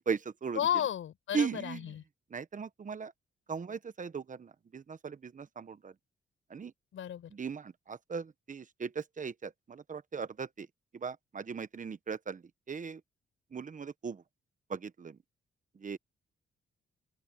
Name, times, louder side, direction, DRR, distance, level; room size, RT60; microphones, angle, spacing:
voice 1, 0.0-0.6 1.3-1.8 2.3-3.1 3.5-5.9 6.5-6.7 7.3-10.7 10.9-12.4 12.7-13.0 13.5-14.2 14.7-15.2 15.8-16.0, right 6 dB, 40° right, 1.1 m, -38 dB
voice 2, 0.5-2.0 6.9-7.3, left 10 dB, 80° left, 5.3 m, -33 dB
open air
cardioid pair, 85°, 20 cm